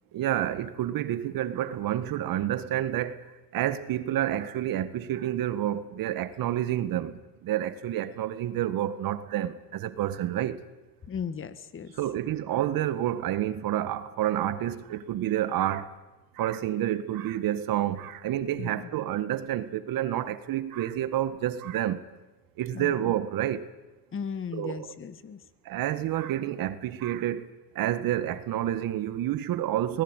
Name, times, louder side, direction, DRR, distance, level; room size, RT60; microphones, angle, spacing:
voice 1, 0.1-3.2 3.5-10.6 12.0-15.9 16.3-22.0 22.6-23.6 24.5-24.9 25.6-30.0, right 12 dB, 50° right, 1.8 m, -29 dB
voice 2, 11.0-11.9 18.6-18.9 22.7-22.9 24.1-25.4, left 6 dB, 25° left, 1.7 m, -36 dB
23.5 x 20.0 x 9.1 m
supercardioid pair, 100°, 45 cm